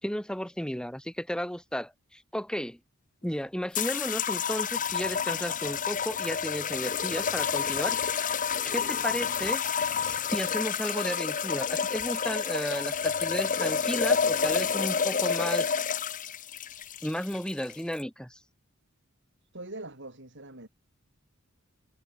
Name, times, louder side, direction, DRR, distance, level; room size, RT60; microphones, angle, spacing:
voice 1, 0.0-2.8 3.2-8.0 8.7-9.6 10.0-15.8 17.0-18.4, equal, 5° left, 5.7 m, -33 dB
sound 1, 3.7-18.0, left 6 dB, 40° left, 1.0 m, -29 dB
voice 2, 19.5-20.7, right 2 dB, 55° right, 6.8 m, -42 dB
head